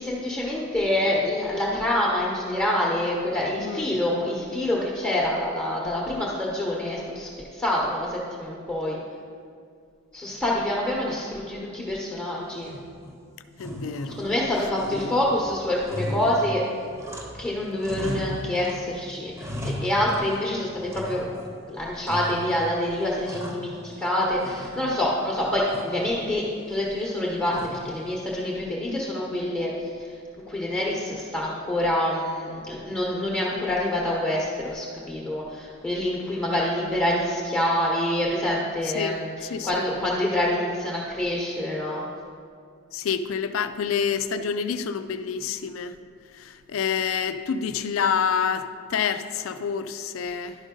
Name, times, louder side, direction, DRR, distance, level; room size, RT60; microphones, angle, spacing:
voice 1, 0.0-9.0 10.1-12.7 14.1-16.6 17.4-21.3 21.7-30.1 30.5-42.0, left 1 dB, 10° left, -5 dB, 0.9 m, -26 dB
sound 1, 12.6-13.2 13.5-14.5 14.7-17.5 17.8-18.8 19.1-20.5 20.9-21.6 22.0-22.7 23.0-24.1 24.4-25.1 25.7-26.1 27.5-28.0, equal, 15° right, 1.0 m, -36 dB
voice 2, 13.6-14.2 38.8-39.2 39.5-39.8 42.9-45.9 46.3-50.6, left 7 dB, 80° left, 11 dB, 0.4 m, -27 dB
11.5 x 5.2 x 3.7 m, 2.2 s
head